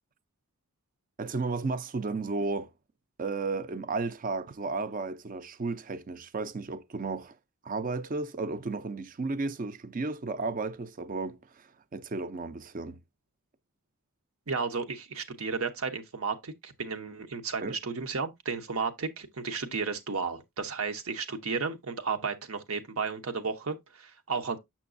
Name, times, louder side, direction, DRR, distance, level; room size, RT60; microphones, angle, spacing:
voice 1, 1.2-2.7 3.2-7.3 7.6-13.0 17.6-17.7, right 3 dB, 35° right, 0.5 m, -33 dB
voice 2, 14.5-24.6, right 5 dB, 70° right, 0.9 m, -33 dB
6.9 x 6.0 x 2.5 m
head